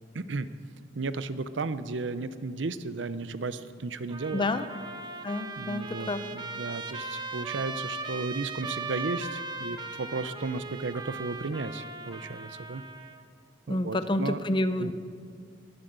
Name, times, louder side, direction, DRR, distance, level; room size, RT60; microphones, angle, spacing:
voice 1, 0.1-0.5 0.9-4.5 5.6-12.8 13.7-14.4 14.8-14.9, right 3 dB, 75° right, 13 dB, 0.7 m, -34 dB
Trumpet, 4.1-13.2, right 3 dB, 25° right, 0.9 m, -38 dB
voice 2, 4.3-4.6 5.2-6.2 13.7-14.9, left 1 dB, 25° left, 11 dB, 0.6 m, -29 dB
20.0 x 7.8 x 8.0 m, 2.2 s
head